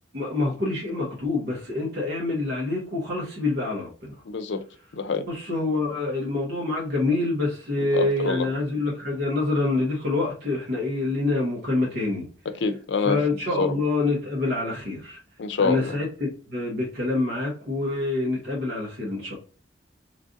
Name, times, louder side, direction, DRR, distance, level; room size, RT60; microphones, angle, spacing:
voice 1, 0.1-4.1 5.3-12.2 13.0-15.2 15.6-16.1 16.5-19.4, left 2 dB, 60° right, 1.1 m, -26 dB
voice 2, 4.3-4.6 4.9-5.3 7.8-8.5 12.5-13.2 13.6-13.7 15.4-16.0, left 4 dB, 80° left, 0.5 m, -26 dB
3.2 x 2.5 x 3.8 m
head